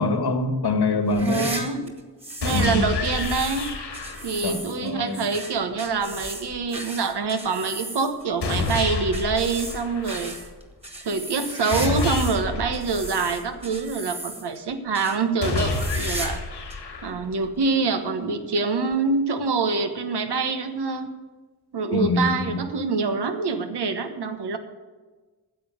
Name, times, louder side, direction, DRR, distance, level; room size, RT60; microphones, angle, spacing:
voice 1, 0.0-1.6 2.5-2.9 4.4-5.2 21.9-22.6, left 2 dB, 70° left, 7 dB, 1.8 m, -24 dB
sound 1, 1.1-2.7 3.0-12.4 12.7-14.6 14.9-15.2 15.5-16.4 16.7-16.8 17.6-17.7 18.9-19.0, right 1 dB, 15° right, 2.1 m, -36 dB
voice 2, 1.3-1.9 2.4-3.7 4.2-10.4 11.0-16.4 17.0-21.1 21.7-24.6, right 4 dB, 75° right, 7 dB, 1.3 m, -25 dB
sound 2, 2.4-4.4 8.4-10.4 11.7-13.7 15.4-17.4, left 3 dB, 85° left, 2.5 m, -29 dB
10.0 x 7.6 x 8.5 m, 1.3 s
cardioid pair, 75°, 40 cm